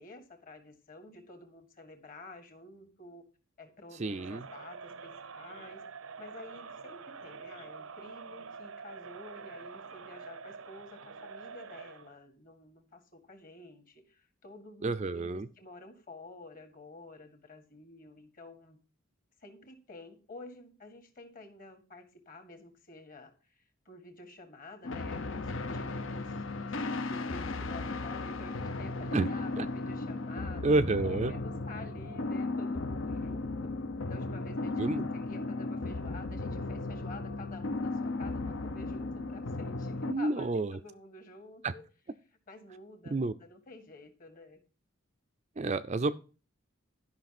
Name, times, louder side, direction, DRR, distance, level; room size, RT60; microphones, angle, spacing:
voice 1, 0.0-3.2 3.6-5.8 6.2-18.8 19.4-30.8 31.0-33.7 34.1-41.8 42.5-44.6, left 2 dB, 40° left, 6 dB, 2.0 m, -50 dB
voice 2, 4.0-4.4 14.8-15.4 29.1-29.3 29.6-29.7 30.6-31.3 34.8-35.0 40.1-40.7 41.6-41.7 43.1-43.3 45.6-46.1, right 3 dB, 30° right, 10 dB, 0.4 m, -29 dB
Crowd, 4.0-12.1, right 5 dB, 75° right, 0.7 m, -46 dB
sound 1, 24.8-40.1, left 2 dB, 65° left, 0.8 m, -35 dB
11.5 x 5.7 x 5.9 m, 0.35 s
head